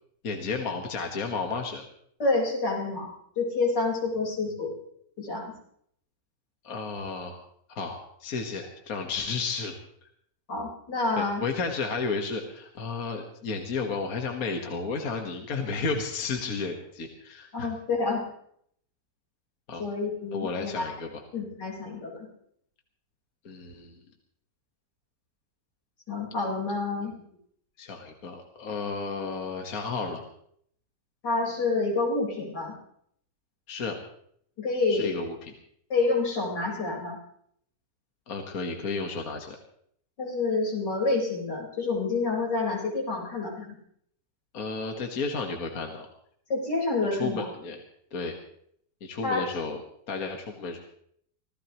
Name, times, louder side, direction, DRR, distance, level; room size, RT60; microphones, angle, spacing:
voice 1, 0.2-1.8 6.6-7.4 7.8-9.8 11.2-17.7 19.7-19.8 20.3-21.1 23.5-23.9 27.8-30.3 33.7-34.0 34.9-35.5 38.3-39.6 44.5-46.1 47.1-47.8 48.1-48.4 49.0-49.8 50.1-50.8, left 4 dB, 55° left, 3 dB, 1.8 m, -32 dB
voice 2, 2.2-3.1 3.4-4.7 5.2-5.5 10.5-11.4 17.5-18.2 19.8-20.9 21.3-22.3 26.1-27.2 31.2-32.7 34.6-35.3 35.9-37.2 40.2-43.7 46.5-47.5 49.2-49.5, left 3 dB, 80° left, -2 dB, 5.1 m, -28 dB
26.0 x 16.0 x 3.0 m, 0.67 s
omnidirectional pair, 1.8 m